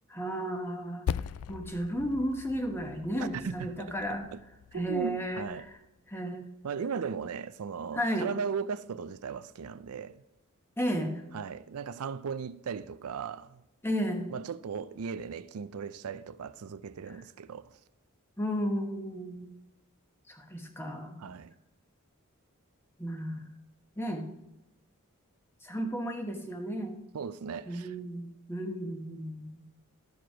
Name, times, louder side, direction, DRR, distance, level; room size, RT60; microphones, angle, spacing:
voice 1, 0.1-1.1 1.5-4.3 4.7-5.8 6.1-6.4 7.9-8.3 10.8-11.2 13.8-14.3 17.1-17.2 18.4-19.5 20.3-21.2 23.0-23.5 24.0-24.3 25.6-27.0 27.7-29.6, equal, 10° left, 1.1 m, -33 dB
Percussion, 1.1-5.9, left 8 dB, 80° left, 0.3 m, -40 dB
voice 2, 3.2-3.9 4.3-4.4 4.7-5.7 6.6-10.2 11.3-13.6 14.3-17.7 21.2-21.5 27.1-28.0, right 6 dB, 85° right, 0.4 m, -37 dB
13.0 x 4.7 x 5.1 m
head